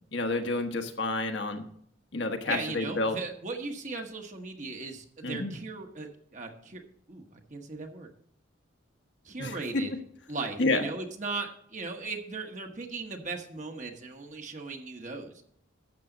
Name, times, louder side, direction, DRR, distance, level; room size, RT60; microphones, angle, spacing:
voice 1, 0.1-1.6 2.1-3.2 5.2-5.5 9.4-9.6 10.6-10.8, left 2 dB, 60° left, 4 dB, 1.3 m, -29 dB
voice 2, 2.5-6.8 7.1-8.1 9.2-9.9 10.3-15.3, right 3 dB, 40° right, 3 dB, 1.3 m, -37 dB
12.0 x 7.8 x 4.0 m, 0.68 s
head